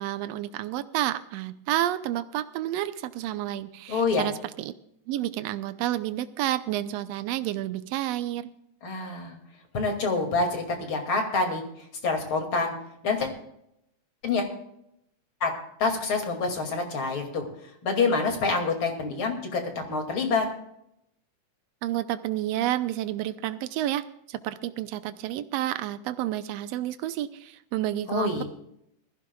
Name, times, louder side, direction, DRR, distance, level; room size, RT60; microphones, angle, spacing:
voice 1, 0.0-4.7 5.1-8.5 21.8-28.4, right 13 dB, 80° right, 12 dB, 1.5 m, -30 dB
voice 2, 3.9-4.3 8.8-9.4 9.7-11.6 12.0-12.7 13.0-13.3 14.2-14.5 15.4-15.5 15.8-17.5 17.8-20.4 28.1-28.4, left 4 dB, 45° left, 3 dB, 3.0 m, -26 dB
21.0 x 15.5 x 2.3 m, 0.76 s
omnidirectional pair, 3.7 m